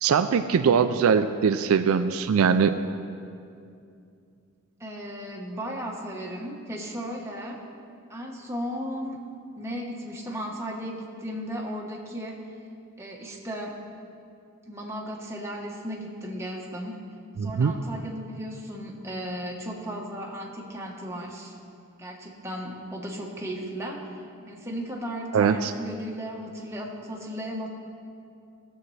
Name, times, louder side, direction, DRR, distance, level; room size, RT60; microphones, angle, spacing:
voice 1, 0.0-2.8 17.4-17.7 25.3-25.7, right 6 dB, 75° right, 9 dB, 0.4 m, -21 dB
voice 2, 4.8-7.6 8.1-9.2 9.6-12.4 13.0-13.7 14.7-16.9 17.4-21.6 22.0-24.2 24.5-27.7, equal, 10° right, -2 dB, 1.1 m, -35 dB
17.0 x 7.3 x 3.2 m, 2.5 s
head